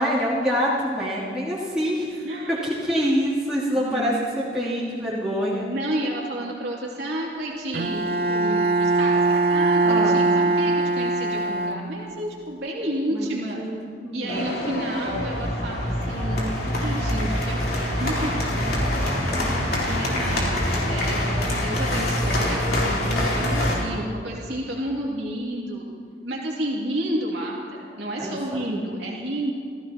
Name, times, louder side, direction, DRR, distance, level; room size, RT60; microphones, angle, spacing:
voice 1, 0.0-5.7 9.8-10.2 13.1-13.3 13.5-13.8 14.0-14.5 28.2-28.7, equal, 5° right, -10 dB, 3.0 m, -26 dB
voice 2, 2.2-2.8 3.7-4.3 4.6-5.4 5.7-13.6 14.1-16.5 16.8-20.5 20.9-25.8 26.2-29.5, right 1 dB, 75° right, -3 dB, 2.6 m, -31 dB
Bowed string instrument, 7.7-12.3, right 3 dB, 55° right, 0.6 m, -22 dB
sound 1, 14.3-23.8, left 1 dB, 55° left, 3.6 m, -25 dB
28.5 x 15.0 x 3.0 m, 2.1 s
head